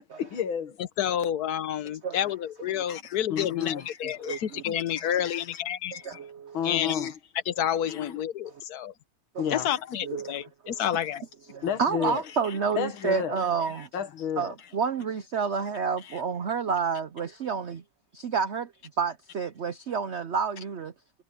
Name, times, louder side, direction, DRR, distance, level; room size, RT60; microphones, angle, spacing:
voice 1, 0.2-0.8 2.9-5.5 5.9-6.2 6.5-7.1 7.9-8.2 9.4-9.7 11.6-14.5 16.0-16.2, left 8 dB, 80° left, 2.2 m, -33 dB
voice 2, 1.0-5.9 6.6-6.9 7.5-8.9 9.5-11.2, left 10 dB, 60° left, 1.2 m, -29 dB
voice 3, 4.2-4.6 6.0-6.8 9.3-9.6 10.0-10.8 11.5-13.9 14.4-17.8 18.1-18.7 19.0-20.9, right 6 dB, 90° right, 0.5 m, -30 dB
omnidirectional pair, 2.2 m